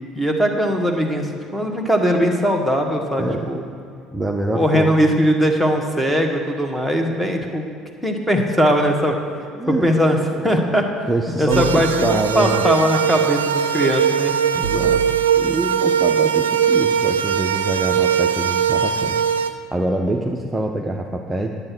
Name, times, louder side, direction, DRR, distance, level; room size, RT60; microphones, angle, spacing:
voice 1, 0.2-3.7 4.5-7.6 8.0-9.2 9.7-10.2 10.4-10.9 11.4-11.9 12.3-14.3, equal, ahead, 2 dB, 1.8 m, -19 dB
voice 2, 3.1-3.6 4.1-4.9 9.5-9.9 10.3-10.4 11.1-12.6 14.5-19.2 19.7-21.5, right 2 dB, 15° right, 1 dB, 0.8 m, -25 dB
sound 1, 11.5-19.5, right 8 dB, 80° right, 0.4 m, -20 dB
11.0 x 8.3 x 6.1 m, 2.4 s
figure-of-eight pair, 60°, 0 cm